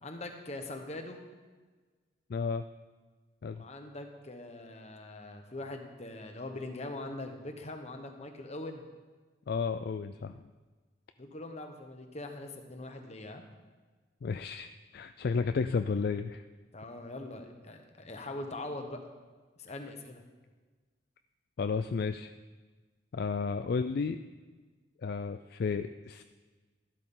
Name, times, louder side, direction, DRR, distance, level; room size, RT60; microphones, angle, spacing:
voice 1, 0.0-1.2 3.5-8.8 11.2-13.4 16.7-19.0 19.6-20.2, left 2 dB, 35° left, 5 dB, 1.2 m, -42 dB
voice 2, 2.3-2.6 3.4-3.6 9.5-10.4 14.2-16.4 21.6-22.3 23.1-24.2 25.0-26.2, left 5 dB, 55° left, 10 dB, 0.4 m, -32 dB
12.5 x 12.0 x 3.9 m, 1.4 s
head